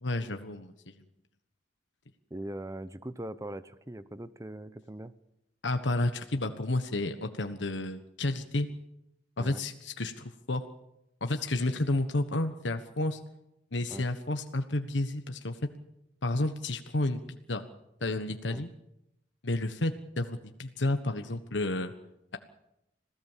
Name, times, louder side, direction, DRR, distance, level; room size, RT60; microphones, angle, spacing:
voice 1, 0.0-0.9 5.6-8.7 9.4-10.7 11.2-13.2 13.7-15.6 16.2-17.6 18.0-18.7 19.4-21.9, left 2 dB, 90° left, 7 dB, 1.4 m, -31 dB
voice 2, 2.3-5.1 6.4-6.5 9.4-9.6 13.9-14.1 18.5-18.6, right 1 dB, 15° right, 14 dB, 0.8 m, -41 dB
26.5 x 17.0 x 7.4 m, 0.87 s
head